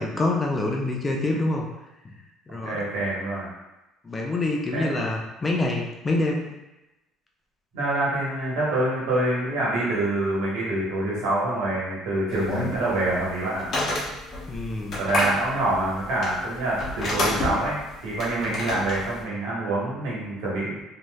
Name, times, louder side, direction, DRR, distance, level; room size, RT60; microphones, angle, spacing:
voice 1, 0.0-1.7 2.0-2.1 2.5-2.9 4.0-6.5 14.5-15.0, left 2 dB, 20° left, 0 dB, 0.4 m, -26 dB
voice 2, 2.6-3.5 4.7-4.9 7.7-13.6 15.0-17.7 18.0-20.8, right 2 dB, 85° right, -6 dB, 1.2 m, -26 dB
sound 1, 12.3-19.2, left 1 dB, 45° left, 0.8 m, -30 dB
3.1 x 2.7 x 2.2 m, 0.98 s
cardioid pair, 125°, 0 cm